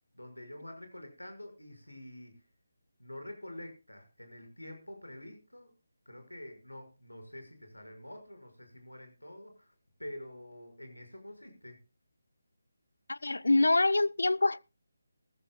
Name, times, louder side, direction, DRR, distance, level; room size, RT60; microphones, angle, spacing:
voice 1, 0.1-2.4 3.0-5.7 6.1-9.7 10.0-11.8, left 1 dB, 90° left, 5.8 m, -47 dB
voice 2, 13.1-14.6, left 2 dB, 70° left, 0.6 m, -25 dB
19.5 x 14.5 x 2.3 m
figure-of-eight pair, 150°, 0 cm